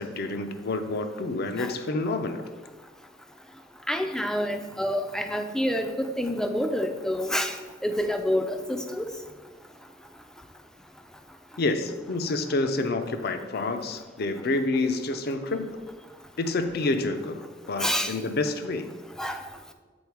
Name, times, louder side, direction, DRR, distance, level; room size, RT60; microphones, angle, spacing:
voice 1, 0.0-2.4 11.6-15.7 16.4-18.9, left 2 dB, 55° left, 9 dB, 0.5 m, -28 dB
voice 2, 3.9-7.6 7.8-9.1 17.8-18.1 19.2-19.4, equal, 5° left, 6 dB, 0.4 m, -27 dB
7.1 x 4.2 x 4.6 m, 1.4 s
head